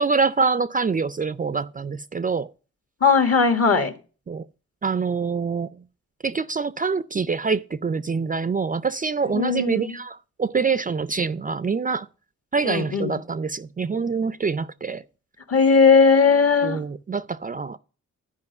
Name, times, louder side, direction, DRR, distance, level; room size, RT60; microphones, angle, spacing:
voice 1, 0.0-2.5 4.3-4.4 4.8-5.7 6.2-12.1 12.5-15.0 16.6-17.8, right 5 dB, 30° right, 0.4 m, -25 dB
voice 2, 3.0-3.9 9.3-10.0 12.6-13.2 15.5-16.8, left 5 dB, 50° left, 1.5 m, -18 dB
11.0 x 5.1 x 6.6 m
wide cardioid pair, 110°, 30 cm